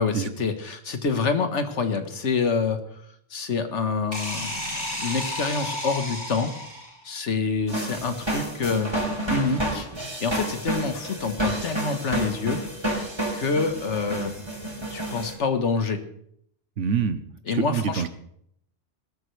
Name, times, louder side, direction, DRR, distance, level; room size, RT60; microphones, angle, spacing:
voice 1, 0.0-2.8 3.3-6.5 7.0-9.9 10.2-12.6 13.3-14.3 14.9-16.0 17.5-18.1, left 4 dB, 75° left, 8 dB, 1.6 m, -27 dB
sound 1, 4.1-7.0, left 1 dB, 50° left, 7.5 m, -32 dB
sound 2, 7.7-15.3, right 1 dB, 20° right, 3.9 m, -30 dB
voice 2, 16.8-18.1, right 7 dB, 90° right, 12 dB, 1.3 m, -26 dB
20.0 x 12.5 x 3.3 m, 0.69 s
omnidirectional pair, 1.2 m